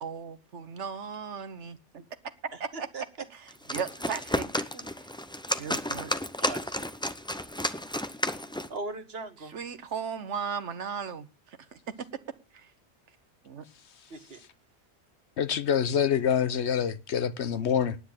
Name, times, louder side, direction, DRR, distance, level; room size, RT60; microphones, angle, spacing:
voice 1, 0.0-2.0 2.6-2.7 3.3-4.7 5.6-6.1 9.4-11.3 11.7-12.1 12.5-12.7 13.4-13.6, right 6 dB, 75° right, 1.4 m, -36 dB
voice 2, 2.7-3.0 4.7-4.9 6.4-6.9 8.7-9.5 14.1-14.4, right 3 dB, 55° right, 1.7 m, -39 dB
sound 1, 3.5-8.8, left 1 dB, 5° left, 0.6 m, -32 dB
voice 3, 15.4-18.0, left 8 dB, 70° left, 1.1 m, -26 dB
10.0 x 9.9 x 7.2 m
omnidirectional pair, 1.2 m